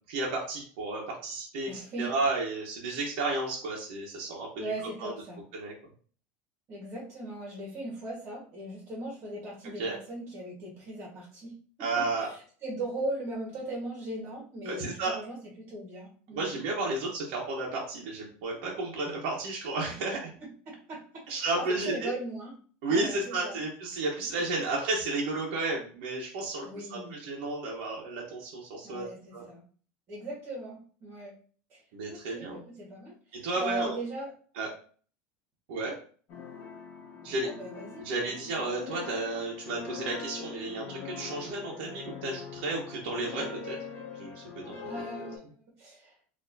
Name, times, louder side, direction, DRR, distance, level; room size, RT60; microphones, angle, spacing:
voice 1, 0.1-1.7 2.0-4.7 5.0-5.1 5.5-5.7 9.8-10.0 11.8-12.3 14.6-15.2 16.3-20.2 21.3-22.1 22.8-29.1 29.3-29.4 31.9-32.6 33.3-34.0 34.5-34.7 35.7-36.0 37.2-37.5 38.0-43.8 44.2-45.0, right 3 dB, 70° right, -2 dB, 1.0 m, -32 dB
voice 2, 1.7-2.1 4.6-5.4 6.7-11.5 11.9-16.6 20.7-22.5 22.9-23.6 26.6-27.2 28.8-29.6 30.1-31.3 31.7-31.8 32.1-34.3 37.3-38.4 43.4-43.5 44.8-45.5 45.8-46.1, right 1 dB, 35° right, -4 dB, 1.5 m, -39 dB
sound 1, 36.3-45.4, left 5 dB, 45° left, 1.6 m, -42 dB
4.4 x 2.8 x 2.7 m, 0.43 s
supercardioid pair, 155°, 6 cm